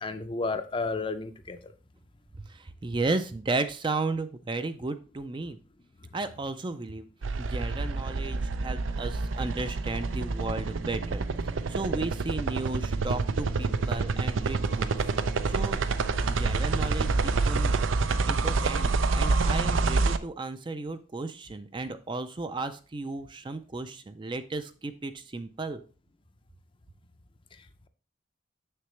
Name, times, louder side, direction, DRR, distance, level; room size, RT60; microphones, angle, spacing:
voice 1, 0.0-1.7, left 3 dB, 25° left, 9 dB, 0.5 m, -32 dB
voice 2, 2.5-5.6 6.1-7.1 7.4-14.9 15.5-15.8 16.3-17.7 18.3-25.8, right 3 dB, 25° right, 10 dB, 0.4 m, -34 dB
sound 1, 7.2-20.2, right 3 dB, 90° right, 0.5 m, -27 dB
6.8 x 6.6 x 3.2 m, 0.35 s
head